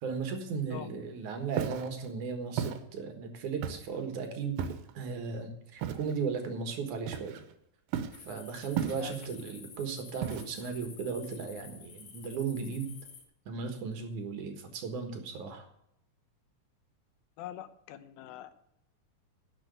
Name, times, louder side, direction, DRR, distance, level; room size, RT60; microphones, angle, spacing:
voice 1, 0.0-4.6 4.9-7.4 8.2-12.9 13.5-15.6, right 5 dB, 65° right, 5 dB, 2.7 m, -36 dB
Walk footsteps, 1.5-1.9 2.6-2.8 3.6-4.0 4.6-4.9 5.8-6.1 7.1-7.5 7.9-8.2 8.8-9.3 10.2-10.7, right 9 dB, 80° right, 2.6 m, -34 dB
sound 1, 8.1-13.2, left 6 dB, 55° left, 2.0 m, -51 dB
voice 2, 17.4-18.5, left 12 dB, 85° left, 12 dB, 2.7 m, -43 dB
11.0 x 6.4 x 7.9 m, 0.77 s
omnidirectional pair, 4.1 m